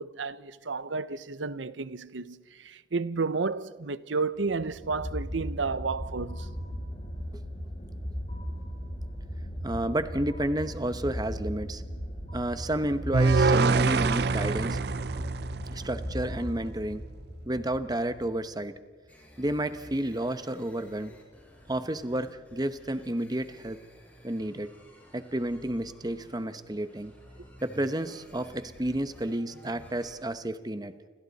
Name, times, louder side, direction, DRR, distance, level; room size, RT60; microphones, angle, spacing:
voice 1, 0.0-6.5, right 4 dB, 85° right, 0.8 m, -32 dB
sound 1, 4.4-18.6, equal, 35° left, 7.9 m, -37 dB
voice 2, 9.6-11.8 12.3-14.8 15.7-17.1 17.5-18.8 19.4-21.2 21.7-23.8 24.2-24.7 25.1-27.1 27.6-30.9, right 1 dB, 20° right, 1.0 m, -31 dB
sound 2, 13.1-16.3, right 4 dB, 60° right, 0.6 m, -25 dB
sound 3, 19.1-30.1, equal, 10° left, 6.2 m, -53 dB
29.5 x 26.5 x 4.2 m
head